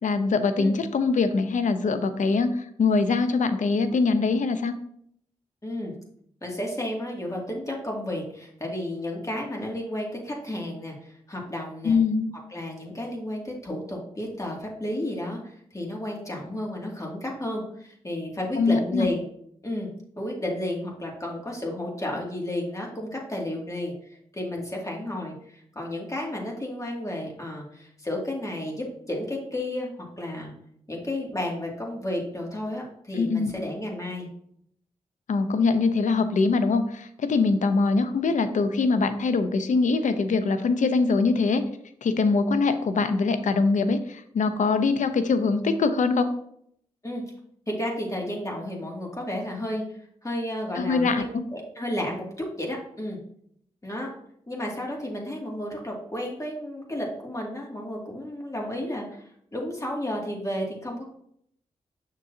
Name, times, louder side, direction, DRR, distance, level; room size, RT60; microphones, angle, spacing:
voice 1, 0.0-4.7 11.8-12.3 18.6-19.1 33.2-33.5 35.3-41.6 42.0-46.3 50.8-51.4, left 4 dB, 70° left, 10 dB, 0.7 m, -23 dB
voice 2, 5.6-5.9 6.4-12.0 12.5-19.2 19.6-19.9 20.2-23.9 24.3-30.5 30.9-34.3 47.0-47.2 47.7-49.8 50.2-53.2 53.8-54.1 54.5-61.0, left 1 dB, 25° left, -1 dB, 2.3 m, -32 dB
6.7 x 6.2 x 2.8 m, 0.69 s
cardioid pair, 50°, 13 cm